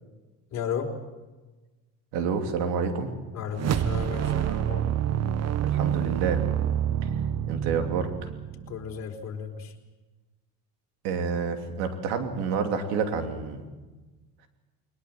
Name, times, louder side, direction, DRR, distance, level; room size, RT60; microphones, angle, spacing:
voice 1, 0.5-0.9 3.3-4.8 8.7-9.7, left 7 dB, 45° left, 0 dB, 4.2 m, -34 dB
voice 2, 2.1-3.1 5.6-6.4 7.5-8.1 11.0-13.7, right 5 dB, 90° right, 5 dB, 3.1 m, -28 dB
sound 1, 3.5-8.9, right 10 dB, 40° right, 0.8 m, -27 dB
21.0 x 20.5 x 7.6 m, 1.2 s
cardioid pair, 120°, 38 cm